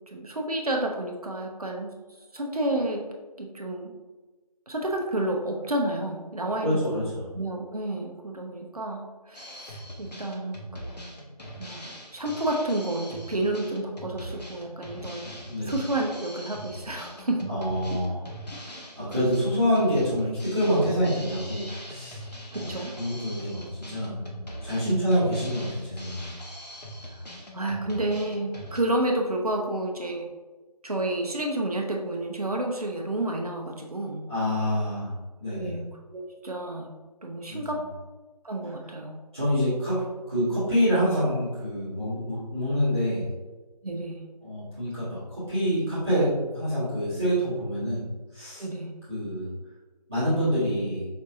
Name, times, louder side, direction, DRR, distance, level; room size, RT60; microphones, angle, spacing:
voice 1, 0.1-1.9 2.3-3.1 3.4-3.9 4.7-10.9 11.6-15.4 15.7-17.5 17.9-18.0 22.5-22.9 24.8-25.2 27.1-27.2 27.5-30.3 30.8-34.3 35.5-37.0 37.2-37.8 38.4-39.2 43.8-44.2 48.6-48.9, right 1 dB, 65° right, 1 dB, 0.7 m, -30 dB
voice 2, 6.6-7.2 15.4-15.8 17.5-18.3 19.0-22.2 22.5-24.2 24.6-26.4 34.3-35.1 35.4-35.8 37.5-37.6 39.3-43.3 44.4-48.0 48.3-48.6 49.1-49.5 50.1-51.0, equal, 15° right, -19 dB, 1.1 m, -26 dB
Drum kit, 9.3-28.8, equal, 80° left, 1.0 m, -41 dB
5.2 x 2.8 x 2.6 m, 1.2 s
figure-of-eight pair, 170°, 21 cm